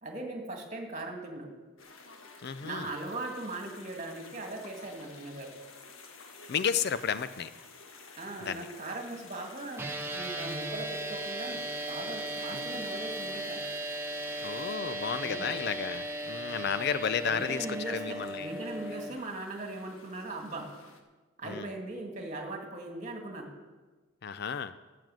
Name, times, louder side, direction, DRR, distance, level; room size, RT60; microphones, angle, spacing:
voice 1, 0.0-1.5 2.6-5.6 8.2-9.9 10.1-13.6 15.2-15.6 17.3-20.7 21.4-23.5, right 2 dB, 35° right, 3 dB, 2.0 m, -39 dB
sound 1, 1.8-21.0, left 4 dB, 80° left, 1.3 m, -52 dB
voice 2, 2.4-2.9 6.5-7.5 8.4-8.7 12.5-12.8 14.4-18.5 21.4-21.7 24.2-24.7, left 6 dB, 50° left, 13 dB, 0.4 m, -33 dB
sound 2, 9.8-19.1, right 1 dB, 10° right, 0.9 m, -37 dB
12.0 x 7.8 x 7.6 m, 1.3 s
head